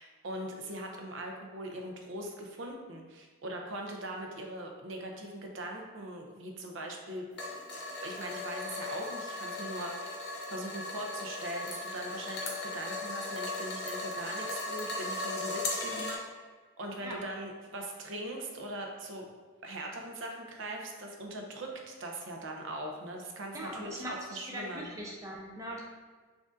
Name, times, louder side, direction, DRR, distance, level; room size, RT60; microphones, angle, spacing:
voice 1, 0.0-7.3 8.0-10.2 10.5-16.4 16.8-19.3 19.6-24.9, right 1 dB, 65° right, 1 dB, 0.6 m, -41 dB
sound 1, 7.3-16.2, left 2 dB, 55° left, 0.7 m, -37 dB
voice 2, 23.5-25.8, equal, 15° right, -2 dB, 0.5 m, -41 dB
6.1 x 2.5 x 2.5 m, 1.4 s
head